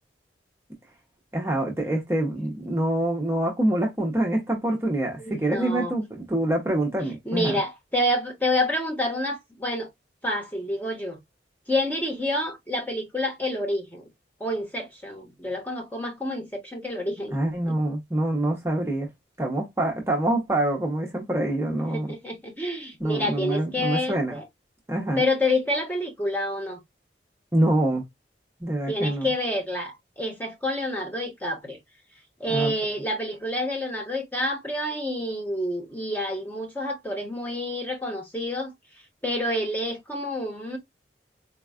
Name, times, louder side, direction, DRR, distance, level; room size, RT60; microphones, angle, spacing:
voice 1, 1.3-7.5 17.3-19.1 19.4-22.1 23.0-24.3 24.9-25.2 27.5-28.0 28.6-29.3 32.5-32.7, right 1 dB, 15° right, 0.7 m, -25 dB
voice 2, 5.2-5.9 7.2-9.9 10.2-11.2 11.7-14.1 14.4-17.4 17.7-17.8 21.9-24.4 25.1-26.8 28.9-31.8 32.4-38.7 39.2-40.8, left 1 dB, 10° left, 0.9 m, -28 dB
4.1 x 2.3 x 2.3 m
head